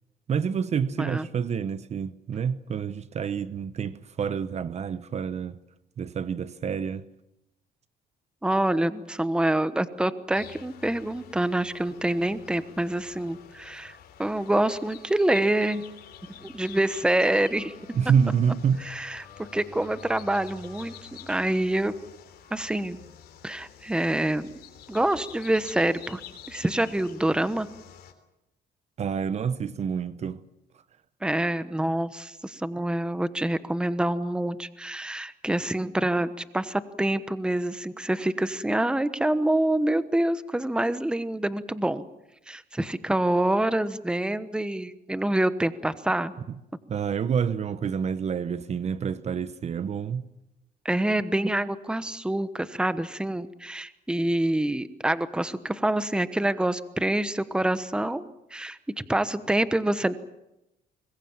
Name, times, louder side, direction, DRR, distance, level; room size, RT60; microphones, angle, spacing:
voice 1, 0.3-5.6 6.0-7.1 17.9-18.8 29.0-30.4 46.5-46.6 46.9-50.2, right 7 dB, 40° right, 0.9 m, -28 dB
voice 2, 8.4-15.8 16.4-17.7 18.8-19.3 19.5-20.9 21.2-21.9 22.5-23.0 23.4-24.5 24.9-26.2 26.5-27.7 31.2-42.0 42.5-46.3 50.8-58.8 59.1-60.1, right 1 dB, 5° right, 1.1 m, -26 dB
sound 1, 10.3-28.1, left 8 dB, 65° left, 3.5 m, -48 dB
25.0 x 21.5 x 7.4 m
cardioid pair, 110°, 17 cm